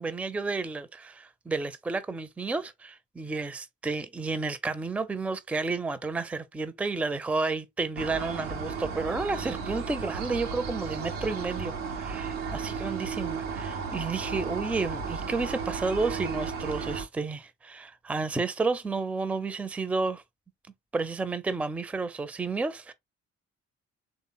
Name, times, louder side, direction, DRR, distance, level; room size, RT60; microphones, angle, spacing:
voice 1, 0.0-20.2 20.9-22.9, right 3 dB, 5° right, 0.4 m, -31 dB
sound 1, 8.0-17.1, right 5 dB, 80° right, 0.6 m, -34 dB
3.3 x 2.0 x 3.8 m
figure-of-eight pair, 40°, 37 cm